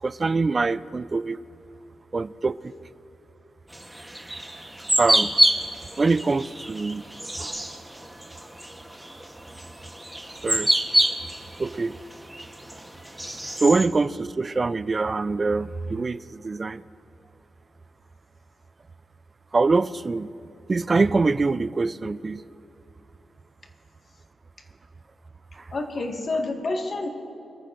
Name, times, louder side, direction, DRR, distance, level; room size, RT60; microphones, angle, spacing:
voice 1, 0.0-1.4 2.1-2.7 5.0-5.4 6.0-7.1 7.4-7.5 10.4-10.7 11.6-12.0 13.6-16.8 19.5-20.3 20.7-22.4 25.6-25.7, right 3 dB, 30° right, 16 dB, 0.3 m, -24 dB
sound 1, 3.7-13.9, right 1 dB, 5° right, 1.0 m, -27 dB
voice 2, 25.7-27.1, left 2 dB, 45° left, 2 dB, 1.6 m, -28 dB
25.0 x 14.5 x 2.6 m, 2.8 s
wide cardioid pair, 115°, 0 cm